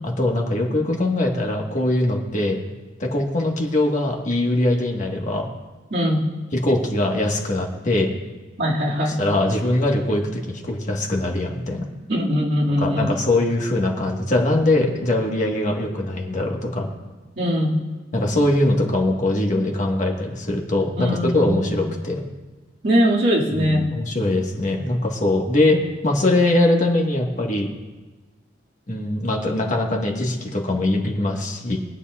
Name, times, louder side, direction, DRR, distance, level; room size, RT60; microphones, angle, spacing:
voice 1, 0.0-2.6 3.0-5.5 6.5-8.1 9.1-11.8 12.8-16.9 18.1-22.2 23.5-27.7 28.9-31.8, left 1 dB, 40° left, 0 dB, 1.4 m, -22 dB
voice 2, 5.9-6.2 8.6-9.2 12.1-13.2 17.4-17.8 21.0-21.9 22.8-23.9, equal, 60° right, -5 dB, 2.1 m, -21 dB
23.0 x 8.2 x 2.4 m, 1.3 s
head